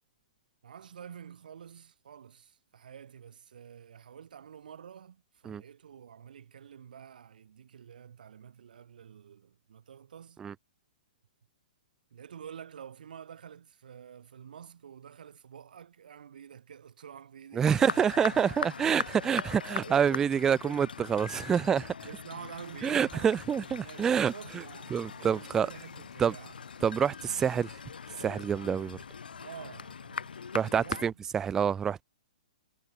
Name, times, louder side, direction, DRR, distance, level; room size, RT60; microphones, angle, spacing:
voice 1, 0.6-10.5 12.1-18.1 18.5-19.2 19.7-20.3 20.6-20.9 22.0-26.6 29.4-30.4 30.6-31.2, right 8 dB, 70° right, 5.0 m, -49 dB
voice 2, 17.5-21.9 22.8-24.3 24.9-25.7 26.2-26.3 26.8-27.8 28.2-29.0 30.5-32.0, right 7 dB, 10° right, 0.3 m, -27 dB
sound 1, 17.6-31.1, left 6 dB, 90° left, 3.8 m, -41 dB
sound 2, 22.5-27.9, left 14 dB, 45° left, 4.6 m, -61 dB
hypercardioid pair, 150°, 5 cm